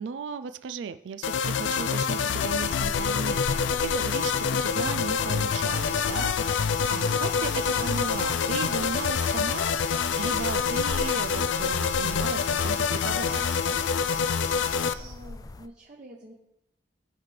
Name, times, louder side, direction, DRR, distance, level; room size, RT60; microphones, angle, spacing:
voice 1, 0.0-9.7 10.2-13.8, right 6 dB, 80° right, 12 dB, 0.4 m, -36 dB
sound 1, 1.2-14.9, left 6 dB, 90° left, 0.4 m, -26 dB
sound 2, 2.4-15.7, left 2 dB, 20° left, 0.3 m, -42 dB
sound 3, 5.6-15.2, right 6 dB, 60° right, 2.1 m, -49 dB
voice 2, 14.7-16.3, right 1 dB, 45° right, -1 dB, 1.0 m, -48 dB
16.5 x 5.8 x 3.3 m, 0.88 s
head